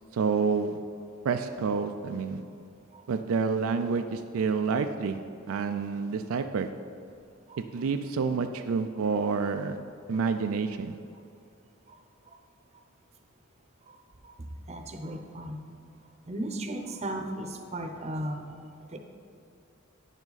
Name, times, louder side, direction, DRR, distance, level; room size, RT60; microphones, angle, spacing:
voice 1, 0.1-0.8 1.2-2.4 3.1-5.2 5.5-6.7 7.7-9.8 10.1-11.0, right 5 dB, 70° right, 7 dB, 0.4 m, -28 dB
voice 2, 14.7-15.6 16.3-18.4 18.9-19.0, right 1 dB, 30° right, 4 dB, 0.7 m, -36 dB
9.7 x 7.2 x 4.0 m, 2.5 s
head